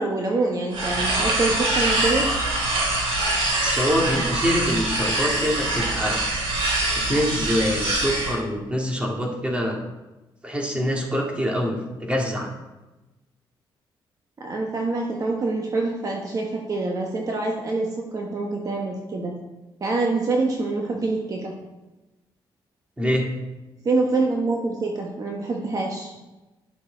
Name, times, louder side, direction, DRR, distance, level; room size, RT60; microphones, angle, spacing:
voice 1, 0.0-2.5 14.4-19.3 19.8-21.5 23.8-26.1, right 3 dB, 40° right, 0 dB, 1.4 m, -25 dB
sound 1, 0.7-8.4, right 2 dB, 85° right, 3.7 m, -24 dB
voice 2, 3.6-6.2 7.0-9.8 10.4-12.5 23.0-23.3, equal, 15° right, 0 dB, 2.3 m, -25 dB
11.5 x 11.0 x 4.0 m, 1.1 s
cardioid pair, 125°, 9 cm